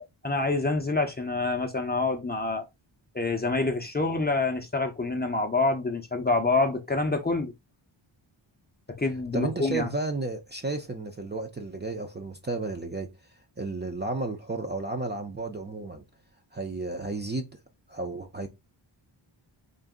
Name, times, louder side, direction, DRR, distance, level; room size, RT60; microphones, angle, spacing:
voice 1, 0.0-2.6 3.1-7.5 9.0-9.9, left 3 dB, 20° left, 0.6 m, -27 dB
voice 2, 9.3-13.1 13.6-16.0 16.5-17.5 17.9-18.5, right 3 dB, 20° right, 0.5 m, -32 dB
3.9 x 2.5 x 3.6 m
wide cardioid pair, 145°, 48 cm